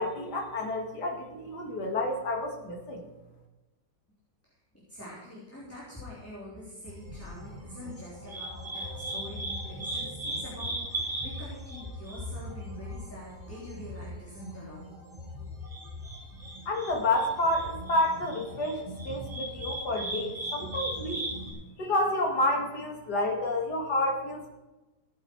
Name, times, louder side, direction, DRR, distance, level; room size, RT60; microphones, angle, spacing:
voice 1, 0.0-3.0 16.7-21.3 21.8-24.5, left 1 dB, 65° left, 1 dB, 2.7 m, -29 dB
voice 2, 4.9-14.9, left 1 dB, 5° left, -7 dB, 3.6 m, -45 dB
sound 1, 6.8-21.5, right 1 dB, 15° right, 4.6 m, -38 dB
17.0 x 9.4 x 4.7 m, 1.1 s
omnidirectional pair, 1.9 m